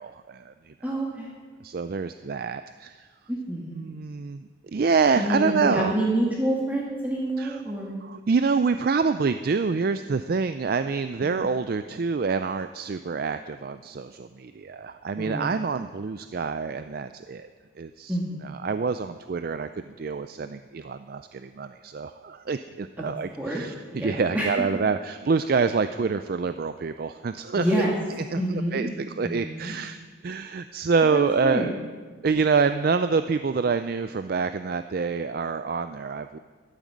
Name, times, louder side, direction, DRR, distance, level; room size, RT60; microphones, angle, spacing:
voice 1, 0.0-0.9 1.6-3.1 3.7-5.9 7.4-7.6 8.0-17.5 17.8-18.2 18.4-19.7 20.0-27.9 28.3-31.7 32.2-36.4, right 5 dB, 45° right, 10 dB, 0.4 m, -27 dB
voice 2, 0.8-1.3 3.3-3.8 5.2-7.9 15.2-15.4 18.1-18.5 23.0-23.1 23.4-23.6 23.9-24.5 27.6-27.9 28.4-28.9 29.2-29.7 31.1-31.7, right 1 dB, 10° right, -4 dB, 1.6 m, -27 dB
13.5 x 9.2 x 7.4 m, 1.4 s
head